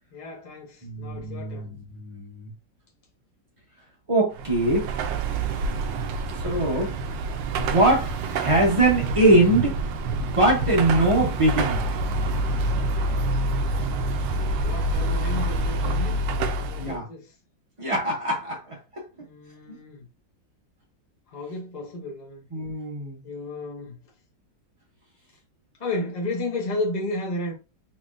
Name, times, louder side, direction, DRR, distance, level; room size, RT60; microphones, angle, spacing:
voice 1, 0.1-1.8 14.5-16.2 16.6-17.3 19.2-20.1 21.3-22.4 23.2-24.0 25.8-27.5, left 2 dB, 40° left, 0.6 m, -33 dB
voice 2, 0.8-2.5 4.1-4.9 6.4-6.9 7.6-9.8 10.2-11.8 16.8-17.1 17.8-19.0 19.7-19.8 22.5-23.2, right 1 dB, 35° right, 0.4 m, -22 dB
Car passing by / Traffic noise roadway noise / Engine, 4.3-17.0, right 2 dB, 85° right, 1.3 m, -27 dB
4.2 x 3.0 x 2.5 m
omnidirectional pair, 2.0 m